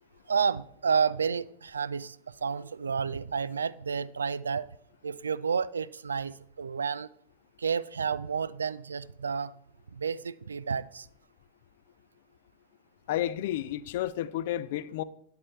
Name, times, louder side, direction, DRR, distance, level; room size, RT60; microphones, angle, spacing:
voice 1, 0.3-4.7 5.0-7.1 7.6-9.5 9.9-11.1, right 6 dB, 70° right, 0.3 m, -30 dB
voice 2, 13.1-15.0, left 12 dB, 55° left, 0.4 m, -31 dB
9.8 x 8.4 x 3.1 m
figure-of-eight pair, 90°, 0 cm